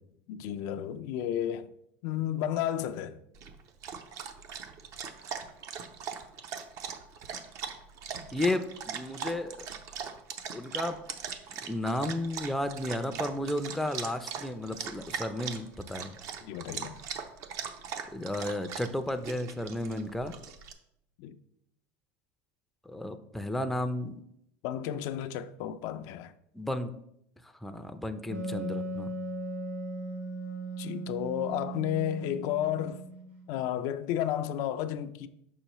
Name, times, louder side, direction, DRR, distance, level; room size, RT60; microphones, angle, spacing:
voice 1, 0.3-1.7 2.0-3.2 16.4-17.0 21.2-21.4 24.6-26.3 30.8-33.0 33.5-35.3, left 11 dB, 65° left, 0.4 m, -32 dB
Dog, 3.3-20.7, right 7 dB, 55° right, 0.7 m, -40 dB
voice 2, 8.3-9.7 10.5-11.0 11.7-16.2 18.1-20.4 22.9-24.2 26.5-27.0 27.4-29.1, left 1 dB, 5° left, 0.4 m, -33 dB
Wind instrument woodwind instrument, 28.3-33.7, right 1 dB, 85° right, 2.6 m, -38 dB
6.2 x 5.5 x 3.0 m
supercardioid pair, 110°, 7 cm